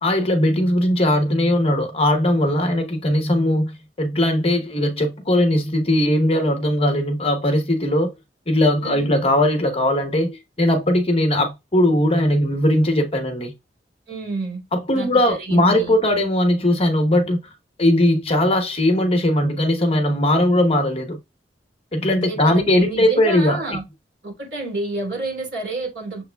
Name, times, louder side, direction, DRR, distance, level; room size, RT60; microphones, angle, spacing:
voice 1, 0.0-8.1 8.5-13.5 14.7-17.5 17.8-21.2 21.9-23.6, left 1 dB, 35° left, 1.0 m, -19 dB
voice 2, 8.8-9.2 14.1-14.6 14.9-15.9 22.1-23.8 24.2-26.3, right 2 dB, 65° right, 2.9 m, -29 dB
6.9 x 3.3 x 2.3 m
head